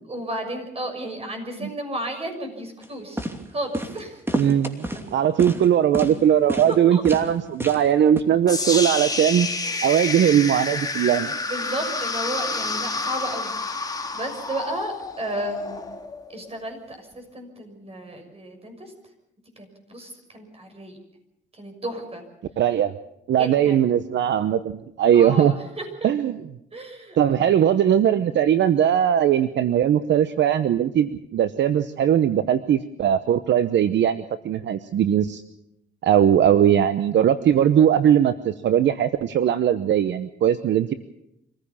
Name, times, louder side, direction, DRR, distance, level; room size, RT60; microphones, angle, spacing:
voice 1, 0.1-4.2 5.5-5.6 6.7-7.0 11.5-13.6 14.1-15.8 16.3-18.9 19.6-21.0 21.5-22.2 23.4-23.8 25.1-26.1 26.7-27.2, right 1 dB, 30° right, 5 dB, 6.4 m, -33 dB
sound 1, 2.8-2.9 3.2-3.4 3.7-4.0 4.3-5.0 5.4-5.7 5.9-6.1 6.5-6.7 7.0-7.3 7.6-7.9 8.2-8.3, right 1 dB, 10° right, 2.8 m, -29 dB
voice 2, 4.3-9.5 9.8-11.3 22.6-22.9 23.3-25.5 26.0-26.3 27.2-35.4 36.0-40.9, right 9 dB, 65° right, 12 dB, 0.9 m, -20 dB
sound 2, 8.5-16.5, left 3 dB, 20° left, 2.1 m, -29 dB
25.5 x 15.0 x 7.2 m, 0.83 s
cardioid pair, 90°, 20 cm